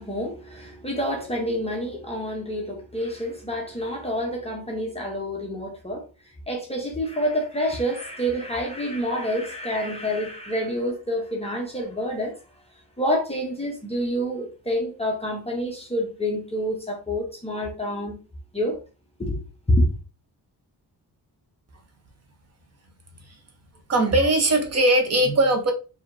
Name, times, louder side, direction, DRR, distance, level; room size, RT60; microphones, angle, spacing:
voice 1, 0.0-6.0 6.5-12.4 13.0-18.2 18.5-18.8 19.2-19.4 19.7-19.9, equal, 15° left, 0.8 m, -27 dB
voice 2, 23.9-25.7, right 1 dB, 35° right, 0.9 m, -20 dB
4.8 x 2.9 x 2.6 m
wide cardioid pair, 160°, 42 cm